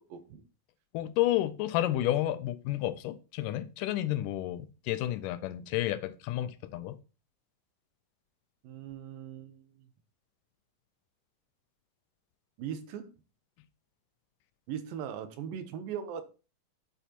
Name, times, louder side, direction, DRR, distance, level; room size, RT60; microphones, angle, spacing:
voice 1, 0.1-0.4 8.6-9.9 12.6-13.1 14.7-16.2, right 8 dB, 90° right, 2.8 m, -39 dB
voice 2, 0.9-7.0, left 14 dB, 80° left, 2.1 m, -31 dB
9.0 x 8.4 x 3.0 m
omnidirectional pair, 3.9 m